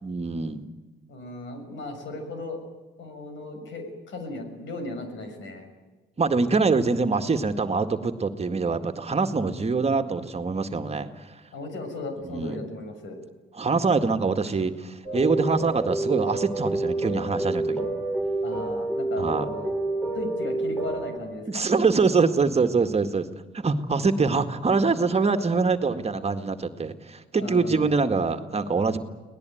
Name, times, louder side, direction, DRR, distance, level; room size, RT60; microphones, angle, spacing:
voice 1, 0.0-0.7 6.2-11.3 12.2-12.6 13.6-17.9 19.2-19.5 21.5-23.3 23.5-29.0, right 4 dB, 30° right, 7 dB, 1.9 m, -24 dB
voice 2, 1.1-2.6 3.0-5.7 11.5-13.2 14.4-14.5 18.4-19.7 20.1-21.6 27.4-28.1, left 2 dB, 75° left, 6 dB, 6.9 m, -36 dB
sound 1, 15.0-21.2, right 2 dB, 10° left, 7.0 m, -28 dB
25.0 x 19.0 x 9.3 m, 1.2 s
cardioid pair, 90°, 20 cm